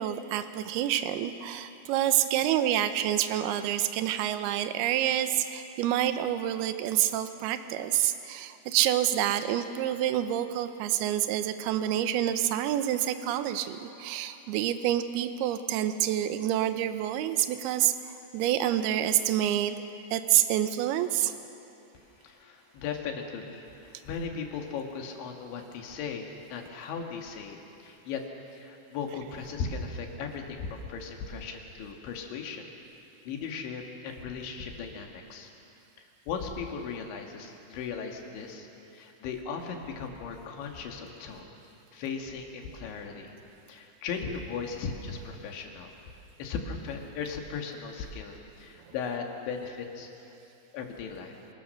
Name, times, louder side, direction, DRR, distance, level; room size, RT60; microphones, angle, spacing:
voice 1, 0.0-19.8 20.1-21.4, right 12 dB, 75° right, 9 dB, 2.5 m, -27 dB
voice 2, 21.9-28.2 28.5-32.7 33.3-35.5 36.0-38.7 38.9-41.5 41.9-43.3 43.7-45.9 46.4-50.1 50.7-51.3, left 5 dB, 80° left, 2 dB, 4.1 m, -37 dB
26.0 x 20.0 x 6.5 m, 2.8 s
omnidirectional pair, 5.3 m